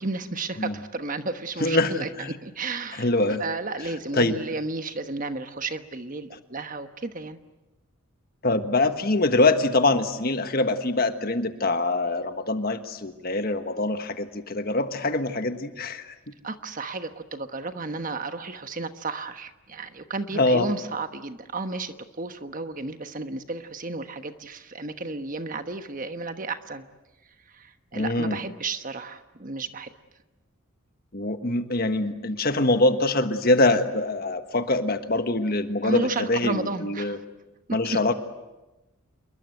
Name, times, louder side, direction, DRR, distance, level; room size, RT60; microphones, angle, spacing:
voice 1, 0.0-3.1 3.4-7.4 16.4-26.9 27.5-29.9 35.8-37.2 37.8-38.1, right 3 dB, 40° right, 8 dB, 1.2 m, -33 dB
voice 2, 1.6-2.3 3.0-3.4 4.1-4.3 8.4-16.1 20.3-20.7 27.9-28.4 31.1-37.2 37.7-38.1, left 2 dB, 45° left, 8 dB, 1.5 m, -24 dB
28.0 x 22.5 x 7.9 m, 1.0 s
head